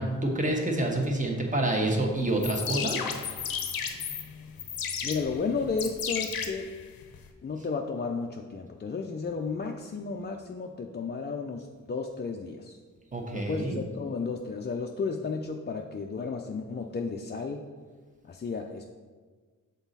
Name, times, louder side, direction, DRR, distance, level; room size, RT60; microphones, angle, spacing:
voice 1, 0.0-3.1 13.1-13.8, right 1 dB, 20° right, 0 dB, 1.1 m, -28 dB
sound 1, 2.3-7.3, left 7 dB, 90° left, 0.6 m, -34 dB
voice 2, 5.0-6.7 7.4-12.8 13.3-17.6 18.3-18.8, left 4 dB, 30° left, 2 dB, 0.4 m, -33 dB
6.0 x 4.0 x 4.1 m, 1.5 s
cardioid pair, 70°, 34 cm